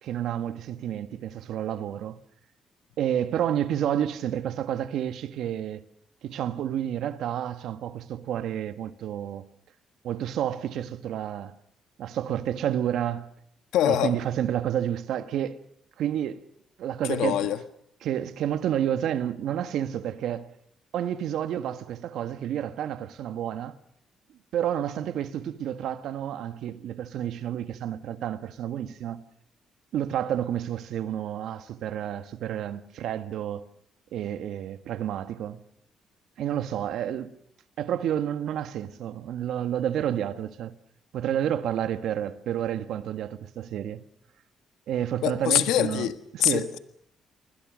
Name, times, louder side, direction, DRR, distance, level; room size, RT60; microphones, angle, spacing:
voice 1, 0.0-2.2 3.0-5.8 6.2-9.4 10.0-11.5 12.0-13.3 13.8-15.6 16.0-16.5 16.8-17.4 18.0-20.5 20.9-23.8 24.5-29.2 29.9-33.6 34.1-35.6 36.4-37.3 37.8-40.7 41.1-44.0 44.9-46.7, right 10 dB, 80° right, 1.6 m, -30 dB
voice 2, 13.7-14.1 17.1-17.6 45.2-46.1 46.4-46.8, left 12 dB, 90° left, 1.5 m, -24 dB
29.5 x 21.0 x 6.4 m
cardioid pair, 90°, 0 cm